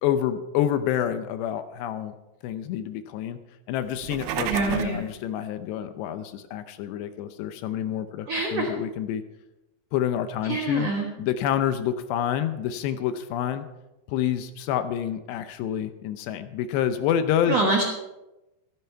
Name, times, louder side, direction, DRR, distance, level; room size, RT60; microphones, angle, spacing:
voice 1, 0.0-2.2 2.4-3.4 3.7-9.2 9.9-10.9 11.2-13.7 14.1-17.6, left 10 dB, 80° left, 10 dB, 2.8 m, -28 dB
sound 1, 3.9-5.1, right 10 dB, 90° right, 3.1 m, -31 dB
voice 2, 4.4-5.1 8.3-8.7 10.4-11.1 17.5-17.8, right 3 dB, 70° right, 0 dB, 1.5 m, -25 dB
14.5 x 12.5 x 4.6 m, 0.98 s
omnidirectional pair, 5.2 m